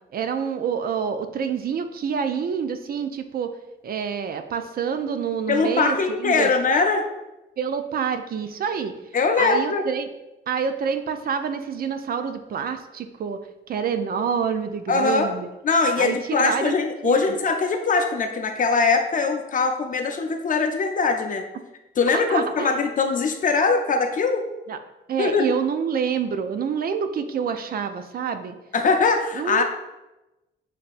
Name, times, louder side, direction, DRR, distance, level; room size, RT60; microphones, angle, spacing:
voice 1, 0.1-3.5 3.8-6.5 7.6-8.9 9.4-10.1 10.5-13.4 13.7-15.5 16.0-16.7 17.0-17.2 22.1-22.7 24.7-24.8 25.1-28.6 29.4-29.6, right 7 dB, 50° right, 8 dB, 0.5 m, -27 dB
voice 2, 5.5-7.1 9.1-9.8 14.9-15.3 15.6-21.5 22.0-24.5 25.2-25.5 28.7-29.6, left 4 dB, 40° left, 5 dB, 0.5 m, -21 dB
7.3 x 2.8 x 2.5 m, 0.97 s
cardioid pair, 90°, 20 cm